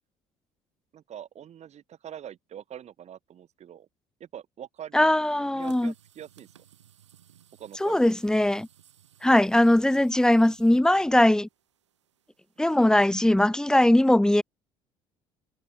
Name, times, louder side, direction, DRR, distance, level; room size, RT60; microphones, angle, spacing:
voice 1, 0.9-3.9 4.2-6.5 7.6-8.0, right 10 dB, 50° right, 3.8 m, -44 dB
voice 2, 4.9-5.9 7.8-8.7 9.2-11.5 12.6-14.4, left 1 dB, 5° left, 1.0 m, -20 dB
sound 1, 5.6-13.4, right 10 dB, 85° right, 7.1 m, -58 dB
hypercardioid pair, 60°, 15 cm